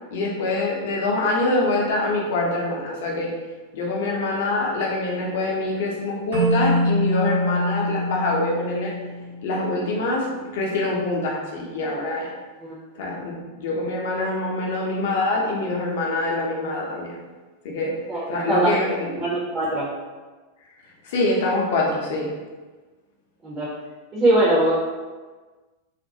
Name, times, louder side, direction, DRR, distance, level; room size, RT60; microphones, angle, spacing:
voice 1, 0.1-3.3 3.7-8.9 9.4-12.3 13.0-17.2 17.6-18.0 18.3-19.3 21.0-22.3, left 2 dB, 55° left, -2 dB, 0.6 m, -25 dB
Keyboard (musical), 6.3-9.6, equal, 70° right, 0.9 m, -24 dB
voice 2, 18.1-18.7 19.2-19.9 23.4-23.7 24.1-24.7, right 1 dB, 25° right, -6 dB, 0.6 m, -21 dB
2.4 x 2.2 x 2.6 m, 1.3 s
figure-of-eight pair, 90°, 0 cm